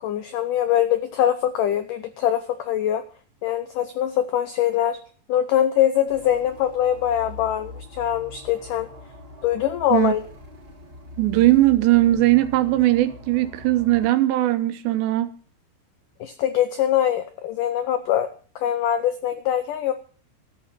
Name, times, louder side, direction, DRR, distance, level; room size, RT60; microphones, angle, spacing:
voice 1, 0.0-3.0 3.4-5.0 5.3-8.9 9.4-10.2 16.2-18.3 18.6-19.9, left 11 dB, 85° left, 1.8 m, -23 dB
sound 1, 6.1-14.1, left 2 dB, 35° right, 0.9 m, -42 dB
voice 2, 11.2-15.3, right 16 dB, 90° right, 3.1 m, -19 dB
13.5 x 8.6 x 7.4 m
omnidirectional pair, 4.9 m